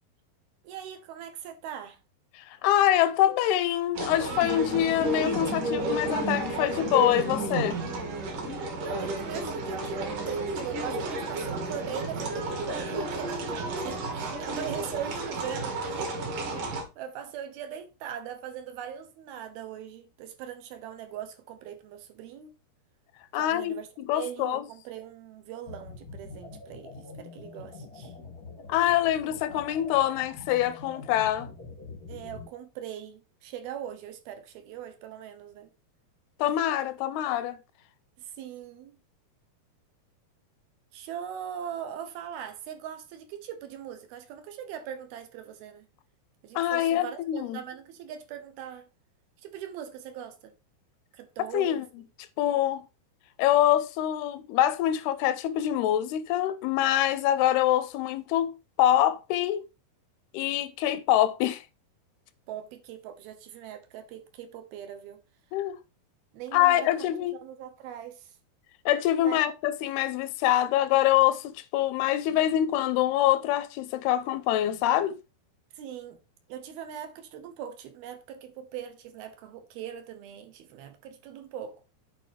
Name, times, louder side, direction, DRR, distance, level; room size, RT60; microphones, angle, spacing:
voice 1, 0.6-2.0 8.8-16.2 16.4-16.6 17.0-22.5 23.3-23.9 24.1-28.1 32.1-35.7 38.2-39.0 40.9-45.9 46.4-48.9 49.4-50.5 51.2-51.8 62.5-65.2 66.3-68.3 69.2-69.4 75.8-76.2 76.5-81.9, right 9 dB, 75° right, 2.8 m, -40 dB
voice 2, 2.4-7.8 23.3-24.6 28.7-31.5 36.4-37.6 46.6-47.6 51.5-51.9 52.4-52.8 53.4-59.6 60.3-61.6 65.5-65.8 66.5-67.4 68.9-75.2, left 12 dB, 85° left, 2.5 m, -25 dB
sound 1, 4.0-16.8, right 2 dB, 55° right, 3.4 m, -32 dB
sound 2, 25.7-32.5, left 4 dB, 50° left, 1.0 m, -44 dB
8.5 x 4.7 x 4.7 m
omnidirectional pair, 4.7 m